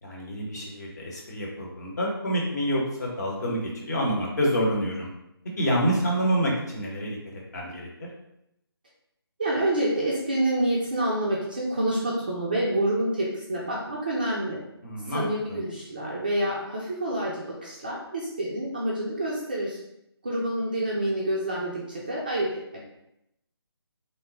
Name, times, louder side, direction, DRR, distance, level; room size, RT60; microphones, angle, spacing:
voice 1, 0.0-5.1 5.6-7.2 7.5-8.1 14.8-15.6, equal, 40° left, -3 dB, 0.9 m, -27 dB
voice 2, 9.4-14.6 15.1-19.8 20.2-22.8, right 1 dB, 20° right, -4 dB, 0.4 m, -27 dB
3.0 x 2.1 x 3.8 m, 0.81 s
figure-of-eight pair, 150°, 13 cm